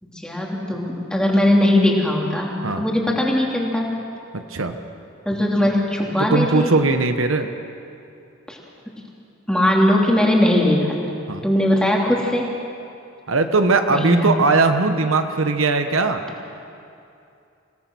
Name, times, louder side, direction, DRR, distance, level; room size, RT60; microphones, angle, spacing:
voice 1, 0.0-4.0 5.3-6.7 8.5-8.6 8.9-9.0 9.5-11.2 11.4-12.5 13.9-14.3, left 1 dB, 5° left, -2 dB, 2.9 m, -20 dB
voice 2, 4.3-4.8 6.2-7.5 11.3-11.4 13.3-16.2, right 3 dB, 80° right, 7 dB, 1.2 m, -19 dB
27.5 x 17.5 x 6.2 m, 2.6 s
head